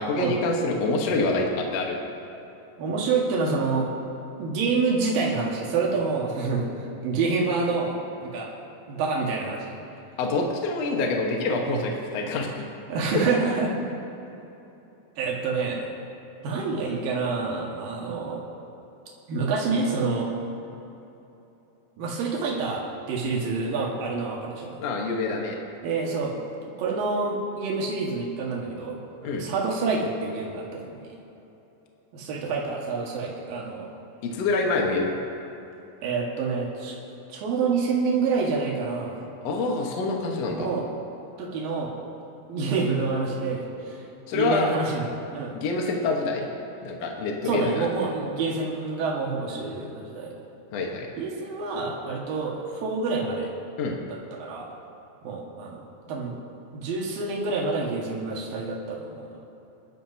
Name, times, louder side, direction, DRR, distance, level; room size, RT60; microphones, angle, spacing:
voice 1, 0.0-2.0 10.2-12.6 13.1-13.4 24.8-25.6 29.2-29.4 34.2-35.1 39.4-40.7 44.3-44.7 45.5-46.5 46.8-47.9 50.7-51.1 53.8-54.0, left 3 dB, 60° left, 0 dB, 2.0 m, -26 dB
voice 2, 2.8-3.9 4.4-8.5 8.9-9.8 12.9-13.7 15.2-15.9 16.4-18.4 19.3-20.3 22.0-22.8 23.1-24.8 25.8-26.4 26.8-31.1 32.1-33.9 36.0-37.0 37.3-39.2 40.5-40.8 41.4-41.9 42.5-44.0 44.3-45.6 47.5-50.3 51.2-53.5 54.1-54.7 55.2-56.3 56.7-59.3, right 4 dB, 80° right, -2 dB, 3.4 m, -27 dB
26.5 x 12.0 x 2.8 m, 3.0 s
omnidirectional pair, 4.1 m